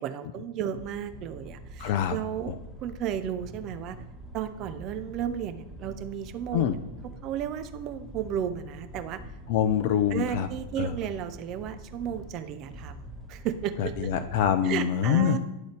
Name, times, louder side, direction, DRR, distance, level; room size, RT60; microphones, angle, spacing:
voice 1, 0.0-2.5 2.8-4.0 4.3-6.8 7.2-9.2 10.1-13.0 13.3-14.1 14.6-15.4, right 9 dB, 40° right, 10 dB, 0.5 m, -33 dB
sound 1, 0.8-14.5, right 1 dB, 15° left, 0.7 m, -45 dB
voice 2, 1.8-2.2 2.5-2.6 6.5-6.8 9.5-10.5 10.8-11.0 13.8-15.4, left 9 dB, 50° left, 9 dB, 0.4 m, -25 dB
10.5 x 3.9 x 3.3 m, 0.95 s
figure-of-eight pair, 90°, 0 cm